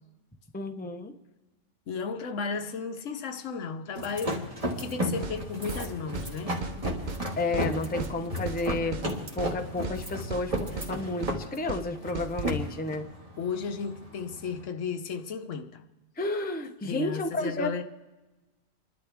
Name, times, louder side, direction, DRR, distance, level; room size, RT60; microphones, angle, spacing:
voice 1, 0.5-1.1 7.4-13.1 16.2-17.7, left 2 dB, 10° left, 0.7 m, -31 dB
voice 2, 1.9-4.4 4.8-6.7 13.4-15.8 16.8-17.8, left 5 dB, 70° left, 1.2 m, -34 dB
sound 1, 4.0-14.6, equal, 25° right, 1.9 m, -34 dB
sound 2, 5.2-5.4 5.7-5.9 6.2-6.3 6.6-7.2 7.5-7.7 8.0-8.2 8.5-9.1 9.4-9.5 9.8-10.0 10.3-10.9 11.2-11.4 11.7-11.9 12.2-12.5, right 4 dB, 45° right, 0.7 m, -36 dB
28.5 x 12.0 x 3.5 m
omnidirectional pair, 1.4 m